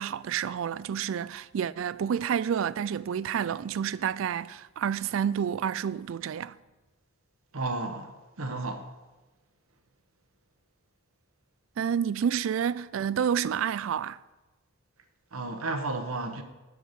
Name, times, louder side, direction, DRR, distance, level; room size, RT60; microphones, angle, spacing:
voice 1, 0.0-6.6 11.8-14.2, right 8 dB, 70° right, 0.3 m, -29 dB
voice 2, 7.5-8.9 15.3-16.4, right 2 dB, 90° right, 1.1 m, -33 dB
12.0 x 4.7 x 6.7 m
head